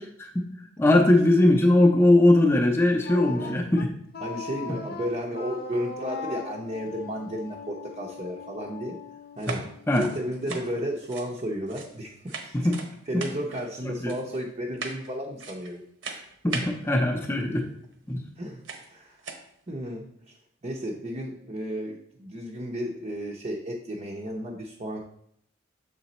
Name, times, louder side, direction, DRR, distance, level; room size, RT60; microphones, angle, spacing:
voice 1, 0.8-3.9 9.5-9.6 9.9-10.1 12.5-12.8 14.0-14.1 16.4-17.6 18.1-18.2, left 1 dB, 10° left, 1 dB, 0.6 m, -20 dB
Wind instrument woodwind instrument, 3.0-10.0, left 4 dB, 50° left, 0.7 m, -39 dB
voice 2, 4.2-9.0 9.4-9.6 10.0-12.7 13.1-15.8 18.4-18.6 18.9-19.2 19.7-20.4 20.6-25.0, equal, 35° right, -1 dB, 0.6 m, -33 dB
sound 1, 9.4-12.0 12.3-12.9 13.2-13.7 14.1-14.4 14.8-15.1 15.4-16.7 17.9-18.0 18.6-18.9 19.2-19.5, right 4 dB, 70° right, 0.9 m, -38 dB
6.9 x 3.9 x 4.2 m, 0.69 s
head